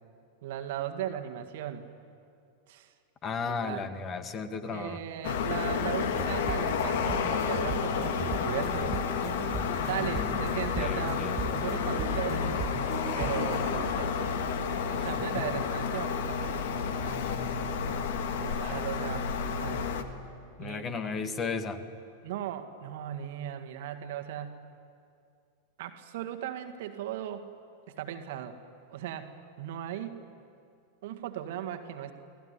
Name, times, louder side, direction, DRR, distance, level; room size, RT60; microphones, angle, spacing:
voice 1, 0.4-1.9 2.7-2.9 3.6-3.9 4.7-9.0 9.8-11.3 11.6-12.7 13.1-14.3 14.9-17.5 18.3-19.8 20.6-21.4 22.2-24.6 25.8-27.5 27.9-28.6 28.9-30.2 31.0-32.1, right 10 dB, 55° right, 7 dB, 1.9 m, -37 dB
voice 2, 3.2-5.0 10.1-11.4 15.0-15.1 15.4-15.5 20.6-21.8, left 5 dB, 25° left, 9 dB, 1.9 m, -35 dB
sound 1, 5.2-20.0, left 6 dB, 55° left, 1.8 m, -30 dB
sound 2, 6.0-13.6, right 6 dB, 25° right, 1.2 m, -39 dB
28.5 x 18.5 x 9.7 m, 2.4 s
figure-of-eight pair, 90°, 0 cm